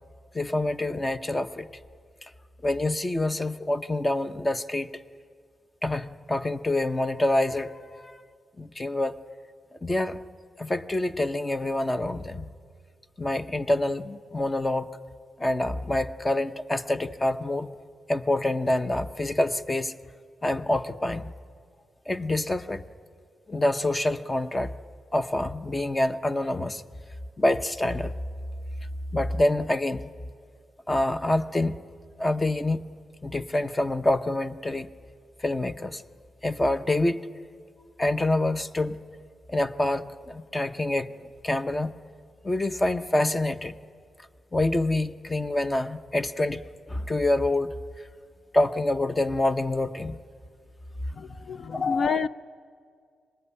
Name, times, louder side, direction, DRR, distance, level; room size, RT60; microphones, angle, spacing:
voice 1, 0.3-1.7 2.6-5.0 5.8-8.2 8.6-9.2 9.8-10.2 10.6-12.5 13.2-14.9 15.4-17.7 18.1-19.9 20.4-21.3 22.1-22.8 23.5-24.7 25.1-26.8 27.4-28.1 29.1-30.1 30.9-31.8 32.2-32.8 33.2-34.9 35.4-36.0 36.4-37.3 38.0-39.0 39.5-41.1 41.4-41.9 42.4-43.7 44.5-46.6 46.9-47.7 48.5-50.2 51.7-52.2, left 1 dB, 20° left, 0.8 m, -26 dB
voice 2, 51.1-52.3, left 5 dB, 50° left, 0.5 m, -29 dB
24.5 x 20.0 x 9.8 m
cardioid pair, 110°, 0 cm